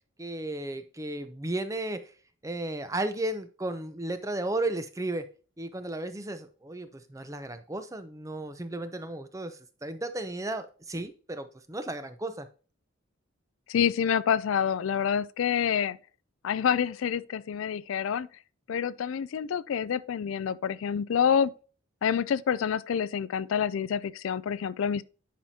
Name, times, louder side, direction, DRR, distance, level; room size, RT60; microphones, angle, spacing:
voice 1, 0.2-2.1 2.4-5.3 5.6-12.5, right 2 dB, 15° right, 0.6 m, -34 dB
voice 2, 13.7-16.0 16.4-18.3 18.7-21.5 22.0-25.0, left 7 dB, 70° left, 0.3 m, -27 dB
10.0 x 5.0 x 2.8 m
head